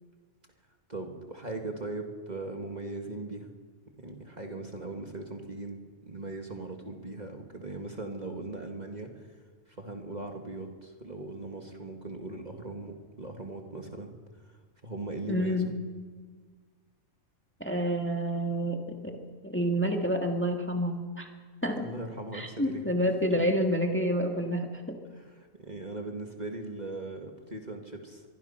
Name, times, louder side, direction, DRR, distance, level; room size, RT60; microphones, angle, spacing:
voice 1, 0.9-3.5 4.0-5.8 6.1-9.3 9.8-14.1 14.8-15.7 21.7-22.9 25.2-28.2, right 2 dB, 30° right, 3 dB, 2.1 m, -39 dB
voice 2, 15.3-15.7 17.6-19.2 19.4-21.3 21.6-21.9 22.3-25.0, equal, 10° left, 3 dB, 1.8 m, -28 dB
24.0 x 23.5 x 5.8 m, 1.5 s
omnidirectional pair, 1.4 m